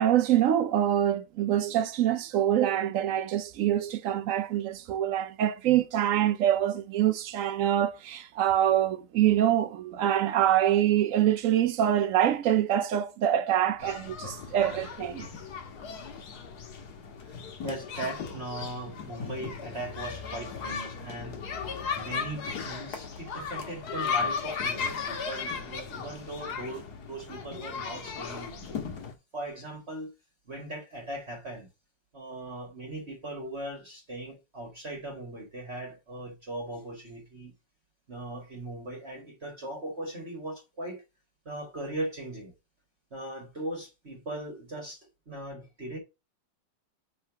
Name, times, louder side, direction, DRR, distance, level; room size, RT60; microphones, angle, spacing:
voice 1, 0.0-15.3, right 11 dB, 70° right, 0.8 m, -25 dB
sound 1, 13.8-29.1, left 5 dB, 60° left, 1.7 m, -36 dB
voice 2, 17.2-21.4 21.6-28.8 29.3-30.1 30.5-31.7 32.1-37.5 38.1-41.0 41.5-42.5 43.1-46.0, right 1 dB, 35° right, 1.8 m, -39 dB
5.6 x 3.8 x 5.7 m
omnidirectional pair, 2.0 m